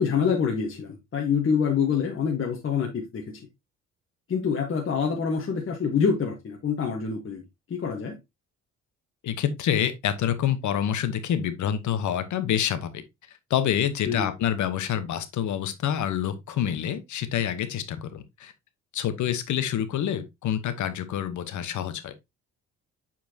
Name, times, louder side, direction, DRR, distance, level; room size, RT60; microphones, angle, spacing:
voice 1, 0.0-3.2 4.3-7.4 7.7-8.2 14.1-14.3, left 6 dB, 45° left, 1.4 m, -26 dB
voice 2, 9.2-13.0 13.5-18.5 18.9-22.1, left 9 dB, 75° left, 1.1 m, -27 dB
7.5 x 4.4 x 2.8 m
cardioid pair, 90°, 30 cm